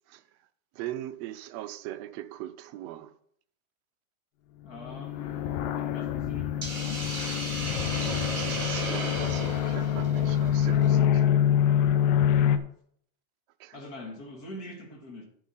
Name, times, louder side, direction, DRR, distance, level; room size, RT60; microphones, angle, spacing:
voice 1, 0.7-3.1 7.6-11.2 13.6-13.7, right 14 dB, 80° right, 1.6 m, -40 dB
voice 2, 4.6-7.1 12.4-12.6 13.7-15.2, left 1 dB, 40° left, 1.5 m, -44 dB
sound 1, 4.8-12.6, left 10 dB, 90° left, 1.3 m, -26 dB
Hiss, 6.6-10.9, right 1 dB, 15° right, 2.0 m, -35 dB
11.0 x 7.5 x 4.1 m
omnidirectional pair, 3.4 m